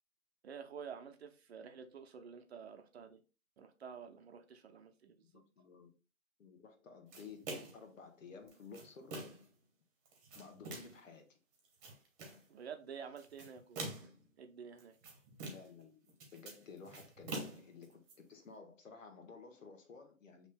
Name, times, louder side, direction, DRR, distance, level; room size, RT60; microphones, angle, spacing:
voice 1, 0.4-3.2 3.6-5.1 12.5-14.1 14.4-15.0, right 6 dB, 50° right, 0.8 m, -50 dB
voice 2, 5.2-6.0 6.4-9.2 10.3-11.4 15.4-20.5, left 5 dB, 65° left, 1.3 m, -54 dB
sound 1, 7.1-7.9 8.5-9.5 10.1-11.0 11.6-12.4 13.2-14.2 14.8-15.8 16.1-18.1, right 2 dB, 25° right, 1.3 m, -46 dB
6.9 x 3.2 x 2.2 m
figure-of-eight pair, 140°, 41 cm